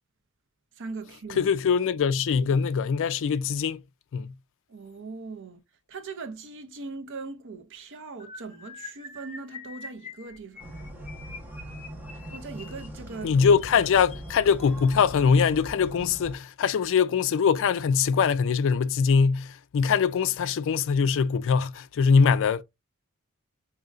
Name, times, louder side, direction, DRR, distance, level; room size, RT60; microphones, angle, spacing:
voice 1, 0.8-1.5 4.7-5.6 5.9-10.7 12.3-13.4 22.2-22.3, right 4 dB, 55° right, 0.7 m, -40 dB
voice 2, 1.4-3.8 4.1-4.3 13.2-22.6, left 6 dB, 60° left, 0.3 m, -22 dB
sound 1, 8.2-15.4 16.1-16.4 16.6-16.9 17.2-17.4, left 4 dB, 30° left, 0.9 m, -46 dB
sound 2, 10.6-16.3, right 1 dB, 10° right, 1.1 m, -41 dB
5.2 x 2.7 x 2.5 m
head